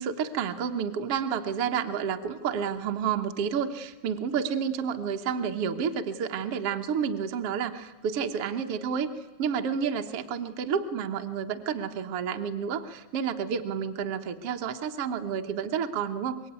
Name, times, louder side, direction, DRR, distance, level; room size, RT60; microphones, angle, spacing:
voice 1, 0.0-16.4, right 7 dB, 60° right, 5 dB, 1.8 m, -30 dB
26.0 x 22.0 x 9.5 m, 1.1 s
omnidirectional pair, 3.4 m